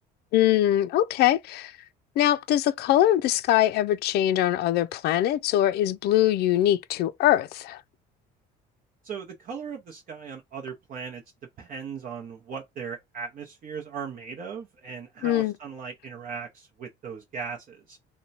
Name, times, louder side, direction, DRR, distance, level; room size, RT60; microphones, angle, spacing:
voice 1, 0.3-1.7 2.2-7.8 15.2-15.5, left 13 dB, 60° left, 0.4 m, -22 dB
voice 2, 9.0-11.2 11.6-18.0, right 6 dB, 45° right, 0.8 m, -38 dB
2.9 x 2.2 x 4.0 m
cardioid pair, 105°, 19 cm